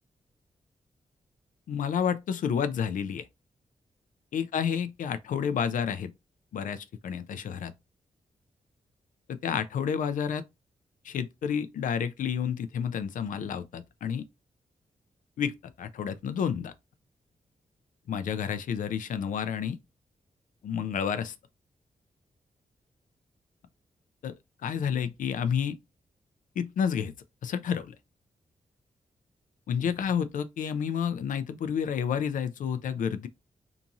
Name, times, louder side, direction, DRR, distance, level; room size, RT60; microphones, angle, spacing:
voice 1, 1.7-3.2 4.3-6.1 6.5-7.7 9.3-10.4 11.0-14.2 15.4-15.5 15.8-16.7 18.1-19.8 20.6-21.3 24.2-24.3 24.6-25.8 26.6-27.1 27.4-27.9 29.7-33.3, left 7 dB, 75° left, 0.4 m, -30 dB
2.9 x 2.6 x 2.3 m
wide cardioid pair, 120°, 14 cm